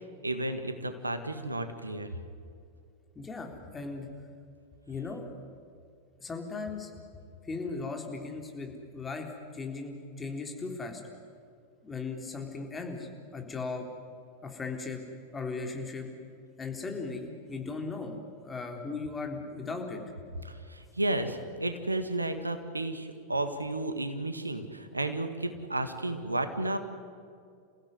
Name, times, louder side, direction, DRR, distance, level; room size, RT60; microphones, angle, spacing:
voice 1, 0.2-2.1 20.4-26.8, right 2 dB, 80° right, 9 dB, 1.7 m, -32 dB
voice 2, 3.2-4.1 4.9-5.3 6.2-6.9 7.4-9.3 9.5-11.0 11.8-13.9 14.4-15.0 15.3-16.1 16.6-18.2 18.4-20.1, left 4 dB, 15° left, 3 dB, 3.7 m, -37 dB
28.5 x 16.0 x 9.7 m, 2.4 s
figure-of-eight pair, 90°, 0 cm